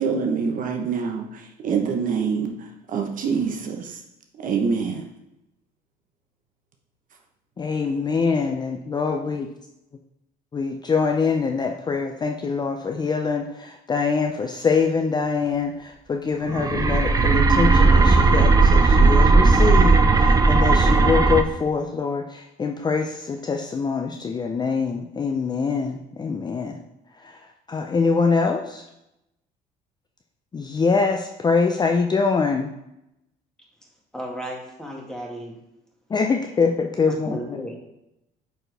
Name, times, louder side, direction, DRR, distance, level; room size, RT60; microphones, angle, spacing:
voice 1, 0.0-4.0 4.4-5.0, right 5 dB, 50° right, 2 dB, 1.0 m, -25 dB
voice 2, 7.6-9.5 10.5-26.8 27.2-28.9 30.5-32.7 36.1-37.4, left 4 dB, 25° left, 4 dB, 0.5 m, -24 dB
sound 1, 16.5-21.4, right 3 dB, 20° right, 0.6 m, -16 dB
voice 3, 34.1-35.6 37.1-37.8, equal, 5° left, -1 dB, 1.8 m, -34 dB
8.7 x 4.3 x 3.4 m, 0.86 s
cardioid pair, 110°, 17 cm